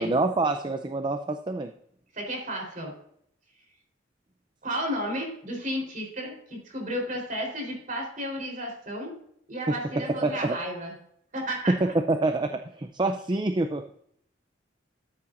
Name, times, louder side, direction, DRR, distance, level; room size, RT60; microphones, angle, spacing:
voice 1, 0.0-1.7 10.0-10.6 11.7-13.8, right 2 dB, 25° right, 7 dB, 0.5 m, -26 dB
voice 2, 2.1-2.9 4.6-9.1 9.5-10.9 11.3-11.7, equal, 45° right, 1 dB, 3.9 m, -33 dB
13.5 x 8.5 x 2.6 m, 0.69 s
head